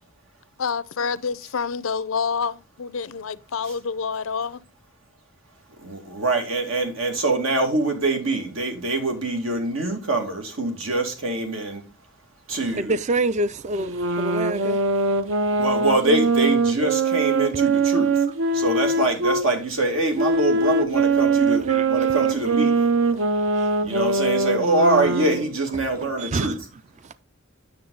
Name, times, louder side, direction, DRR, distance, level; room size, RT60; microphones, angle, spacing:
voice 1, 0.6-4.6, left 5 dB, 90° left, 0.6 m, -28 dB
voice 2, 5.8-11.8 12.5-12.9 15.5-18.1 18.5-22.9 23.8-26.6, right 2 dB, 90° right, 2.5 m, -24 dB
voice 3, 12.7-14.9 15.3-15.6 21.7-22.1 23.1-24.0 26.2-26.6 27.0-27.1, right 2 dB, 35° right, 0.4 m, -28 dB
sound 1, 13.8-19.5 20.2-25.5, right 3 dB, 70° right, 0.9 m, -22 dB
9.6 x 6.5 x 3.9 m
head